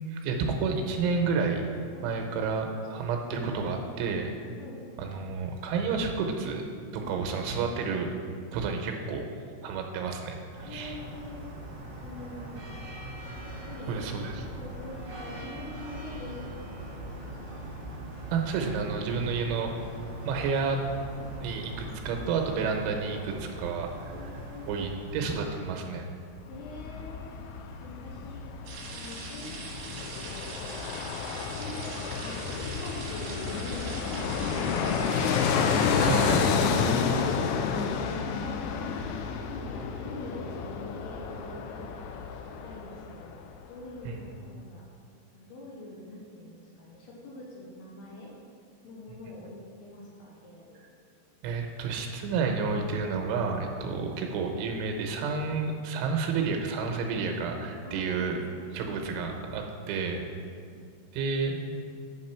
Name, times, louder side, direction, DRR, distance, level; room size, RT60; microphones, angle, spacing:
voice 1, 0.1-1.6 2.0-4.3 5.0-6.6 6.9-8.1 8.5-9.3 9.6-11.0 13.9-14.5 18.3-19.7 20.3-20.8 21.4-23.9 24.7-26.1 36.0-36.5 44.1-44.2 51.4-58.4 58.7-60.2 61.1-61.7, right 4 dB, 85° right, 3 dB, 3.2 m, -30 dB
voice 2, 7.0-7.4 10.6-11.4 12.0-13.0 13.7-14.0 14.6-17.7 21.1-21.4 24.1-24.9 26.5-27.4 27.8-28.4 28.9-31.1 31.4-31.9 32.2-35.4 36.8-37.3 37.7-39.1 39.4-43.3 43.7-44.8 45.3-48.3 48.8-50.8 53.9-54.1 57.8-58.4 60.5-60.9, left 1 dB, 75° left, -4 dB, 2.7 m, -45 dB
sound 1, 10.5-26.0, right 1 dB, 35° right, 1.9 m, -41 dB
Fixed-wing aircraft airplane, 26.4-43.3 43.6-43.7, left 6 dB, 90° left, 3.1 m, -30 dB
sound 2, 28.7-36.5, right 4 dB, 60° right, 2.5 m, -42 dB
8.6 x 7.2 x 4.4 m, 2.2 s
omnidirectional pair, 5.5 m